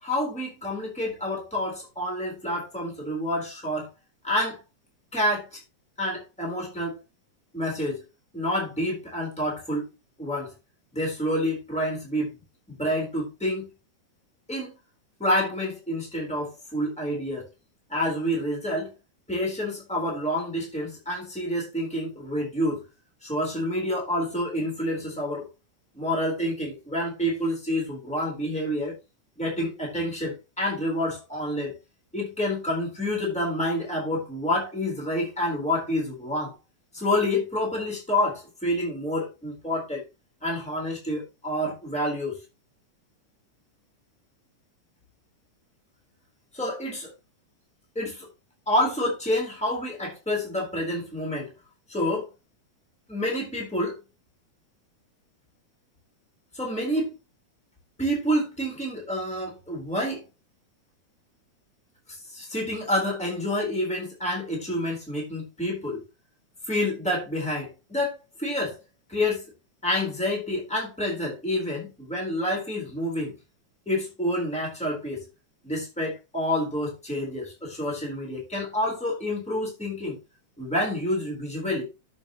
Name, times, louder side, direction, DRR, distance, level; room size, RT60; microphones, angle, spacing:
voice 1, 0.0-3.9 4.2-4.6 5.1-5.6 6.0-7.0 7.5-8.0 8.3-9.9 10.2-10.5 10.9-12.4 12.7-13.7 14.5-14.8 15.2-17.5 17.9-18.9 19.3-22.8 23.2-25.5 25.9-28.9 29.4-31.7 32.1-36.6 36.9-40.0 40.4-42.4 46.5-47.1 47.9-48.3 48.7-51.5 51.9-52.3 53.1-54.0 56.5-57.1 58.0-60.3 62.1-66.0 66.7-68.8 69.1-69.5 69.8-73.4 73.9-75.3 75.6-80.2 80.6-81.8, left 1 dB, ahead, 3.8 m, -28 dB
9.6 x 8.4 x 3.1 m
omnidirectional pair, 3.5 m